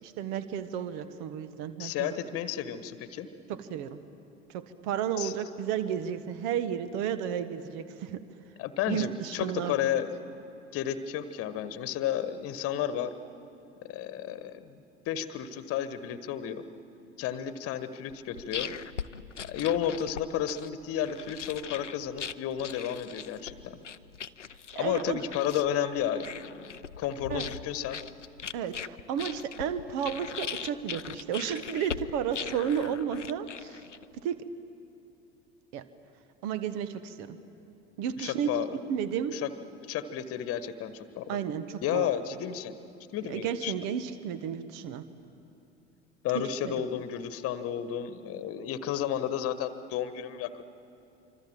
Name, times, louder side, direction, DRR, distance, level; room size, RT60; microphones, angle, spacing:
voice 1, 0.0-2.1 3.5-4.0 4.5-8.2 8.9-9.7 24.7-25.2 27.3-27.5 28.5-33.8 34.2-34.4 35.7-35.8 36.4-37.4 38.0-38.5 38.9-39.4 41.3-42.1 43.3-45.0 46.3-46.7, right 8 dB, 50° right, 13 dB, 1.3 m, -32 dB
voice 2, 1.8-3.3 5.2-5.3 8.6-10.3 10.7-13.1 13.9-14.8 15.1-16.6 17.2-18.7 19.4-23.8 24.7-26.7 27.0-28.0 38.2-38.8 39.3-39.5 39.9-41.4 41.8-42.7 43.1-43.7 46.2-50.6, left 10 dB, 40° left, 12 dB, 1.3 m, -32 dB
sound 1, 18.1-34.2, left 7 dB, 90° left, 0.5 m, -40 dB
25.5 x 25.0 x 7.5 m, 2.8 s
figure-of-eight pair, 70°, 35 cm